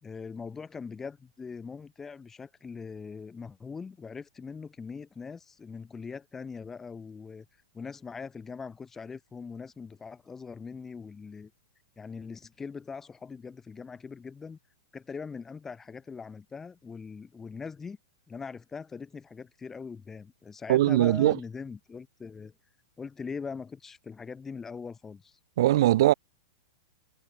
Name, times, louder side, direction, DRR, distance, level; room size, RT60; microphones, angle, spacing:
voice 1, 0.0-7.4 7.7-11.5 12.0-14.6 14.9-18.0 18.3-22.5 23.0-25.4, left 5 dB, 15° left, 4.9 m, -41 dB
voice 2, 20.7-21.4 25.6-26.1, right 15 dB, 65° right, 1.0 m, -21 dB
hypercardioid pair, 120°, 2 cm